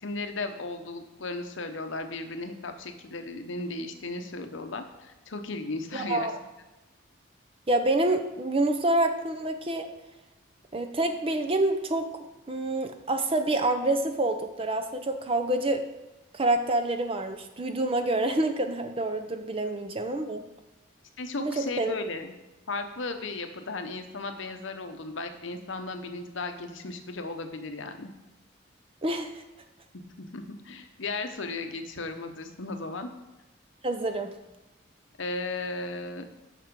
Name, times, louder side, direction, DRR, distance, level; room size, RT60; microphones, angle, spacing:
voice 1, 0.0-6.3 21.2-22.3 22.7-28.1 29.9-33.1 35.2-36.3, left 3 dB, 65° left, 7 dB, 0.8 m, -35 dB
voice 2, 5.9-6.3 7.7-9.9 10.7-12.1 12.5-15.8 16.3-20.4 21.4-21.9 29.0-29.4 33.8-34.3, right 2 dB, 25° right, 7 dB, 0.6 m, -27 dB
7.5 x 6.0 x 5.2 m, 1.0 s
head